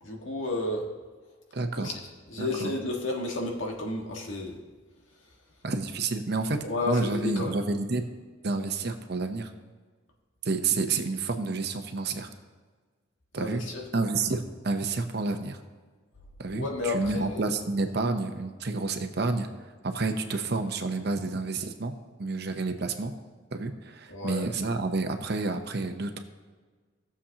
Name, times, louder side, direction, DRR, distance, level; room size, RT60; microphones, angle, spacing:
voice 1, 0.0-0.9 1.7-2.0 2.3-4.6 6.6-7.5 13.4-13.8 16.5-17.4 24.1-24.5, left 2 dB, 80° left, 0 dB, 1.7 m, -32 dB
voice 2, 1.5-1.9 2.4-2.7 5.6-6.6 6.9-8.0 8.4-9.5 10.4-12.3 13.3-13.6 13.9-15.6 16.4-19.5 19.8-21.9 22.2-23.1 23.5-26.2, right 3 dB, 55° right, 6 dB, 0.9 m, -29 dB
18.0 x 7.1 x 2.9 m, 1.4 s
head